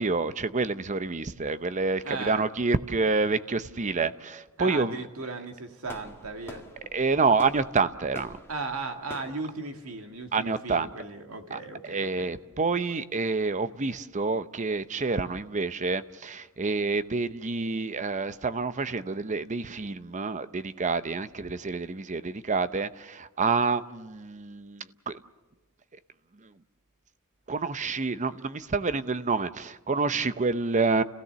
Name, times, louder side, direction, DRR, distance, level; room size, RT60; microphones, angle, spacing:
voice 1, 0.0-5.0 6.9-8.4 10.3-10.9 11.5-25.2 26.4-26.5 27.5-31.0, right 4 dB, 35° right, 0.7 m, -28 dB
voice 2, 2.0-2.4 4.6-6.6 8.5-12.3, right 3 dB, 70° right, 2.0 m, -36 dB
sound 1, 5.8-10.8, left 1 dB, 10° left, 1.7 m, -47 dB
30.0 x 16.5 x 6.9 m
head